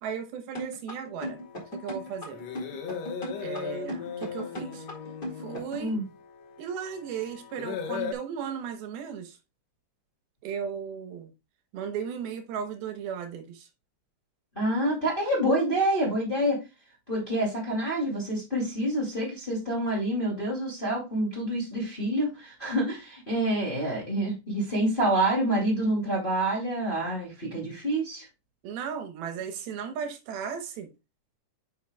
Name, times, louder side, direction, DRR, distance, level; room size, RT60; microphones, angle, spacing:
voice 1, 0.0-1.4 1.7-2.4 3.4-4.9 5.4-6.0 6.6-9.4 10.4-11.3 11.7-13.7 28.6-30.9, right 7 dB, 75° right, 2.8 m, -36 dB
sound 1, 0.5-5.9, left 1 dB, 50° left, 0.6 m, -37 dB
sound 2, 1.2-8.1, left 7 dB, 80° left, 1.5 m, -38 dB
voice 2, 14.6-16.6 17.1-28.2, right 1 dB, 15° left, 1.8 m, -27 dB
9.2 x 6.0 x 2.2 m
omnidirectional pair, 4.5 m